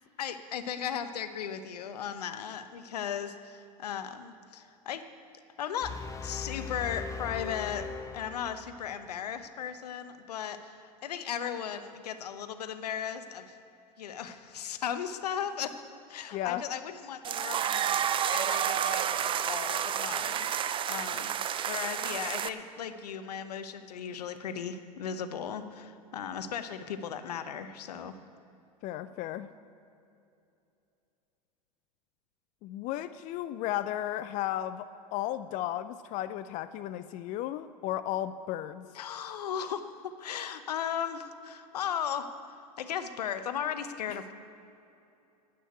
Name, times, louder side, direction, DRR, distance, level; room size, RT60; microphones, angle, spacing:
voice 1, 0.2-5.1 5.6-7.9 8.1-13.6 14.0-15.7 16.1-28.1 38.9-44.3, left 8 dB, 70° left, 10 dB, 0.9 m, -36 dB
sound 1, 5.8-9.0, left 5 dB, 15° left, 0.8 m, -39 dB
voice 2, 16.3-16.6 28.8-29.5 32.6-34.9 35.1-38.8, left 13 dB, 40° left, 13 dB, 0.4 m, -34 dB
sound 2, 17.2-22.5, right 9 dB, 25° right, 0.5 m, -30 dB
10.0 x 8.7 x 9.1 m, 2.7 s
hypercardioid pair, 90°, 21 cm